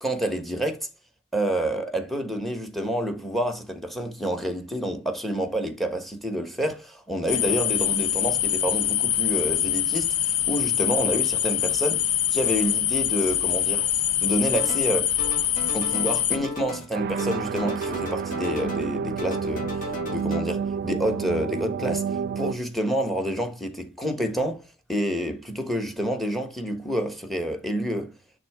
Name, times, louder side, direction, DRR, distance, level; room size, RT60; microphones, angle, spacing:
voice 1, 0.0-0.9 1.3-13.9 14.2-15.1 15.7-19.7 20.1-24.6 24.9-28.1, equal, ahead, 1.2 m, -28 dB
sound 1, 7.3-16.4, left 10 dB, 75° left, 0.8 m, -24 dB
sound 2, 14.5-14.9 15.2-16.9 17.2-18.9 19.2-20.4, left 3 dB, 35° left, 1.9 m, -36 dB
sound 3, 16.9-22.5, right 6 dB, 45° right, 0.3 m, -29 dB
9.7 x 3.6 x 3.6 m
head